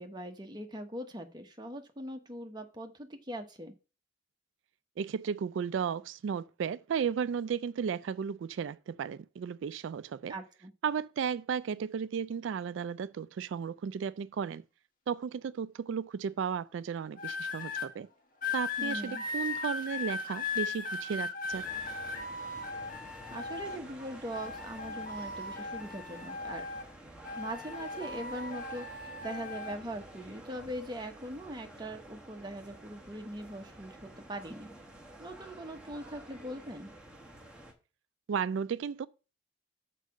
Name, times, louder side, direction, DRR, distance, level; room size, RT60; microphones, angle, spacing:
voice 1, 0.0-3.7 10.3-10.7 18.8-19.2 23.3-26.7 27.4-34.7 35.2-36.9, right 1 dB, 20° right, 0.9 m, -41 dB
voice 2, 5.0-10.3 10.8-14.6 15.1-18.1 18.5-21.7 38.3-39.1, right 7 dB, 70° right, 0.3 m, -34 dB
sound 1, 17.2-17.9 18.4-23.9 24.3-26.9 27.2-29.8 30.5-30.8, left 4 dB, 40° left, 1.3 m, -38 dB
sound 2, 21.5-37.7, right 1 dB, 5° right, 1.1 m, -50 dB
6.5 x 4.6 x 6.3 m
head